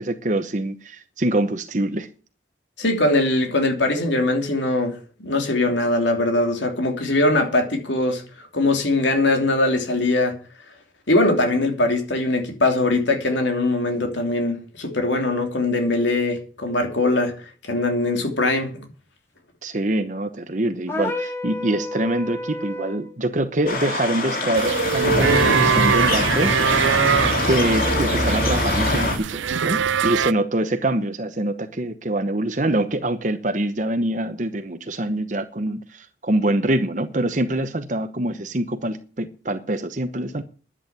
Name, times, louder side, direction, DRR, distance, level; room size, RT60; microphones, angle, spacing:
voice 1, 0.0-2.1 19.6-26.5 27.5-40.4, right 1 dB, 40° right, 1.0 m, -24 dB
voice 2, 2.8-10.3 11.1-17.3 17.6-18.8, left 2 dB, 75° left, 3.0 m, -21 dB
sound 1, 20.9-23.1, left 1 dB, 15° left, 1.6 m, -30 dB
sound 2, 23.7-29.2, left 1 dB, 50° left, 3.2 m, -23 dB
sound 3, 24.5-30.3, right 7 dB, 90° right, 0.5 m, -22 dB
10.5 x 8.7 x 8.7 m
head